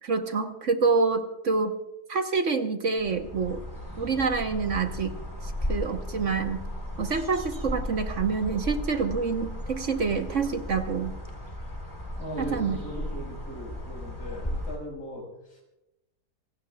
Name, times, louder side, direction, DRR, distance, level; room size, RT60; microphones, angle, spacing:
voice 1, 0.0-1.8 2.1-3.6 4.0-5.1 5.4-6.6 7.0-11.1 12.4-12.8, right 4 dB, 50° right, 6 dB, 1.3 m, -27 dB
sound 1, 3.0-14.8, left 1 dB, 15° left, 3.9 m, -35 dB
voice 2, 12.2-15.6, equal, 80° left, 0 dB, 5.9 m, -38 dB
27.5 x 18.0 x 2.3 m, 0.89 s
omnidirectional pair, 1.7 m